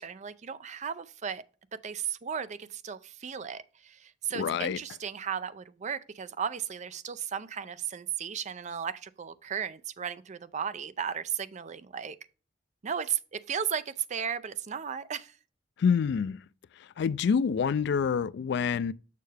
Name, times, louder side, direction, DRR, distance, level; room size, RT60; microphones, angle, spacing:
voice 1, 0.0-1.4 1.7-12.2 12.8-15.3, right 7 dB, 40° right, 0.5 m, -35 dB
voice 2, 4.3-4.8 15.8-16.4 17.0-18.9, left 6 dB, 65° left, 0.3 m, -27 dB
6.7 x 6.3 x 3.3 m
head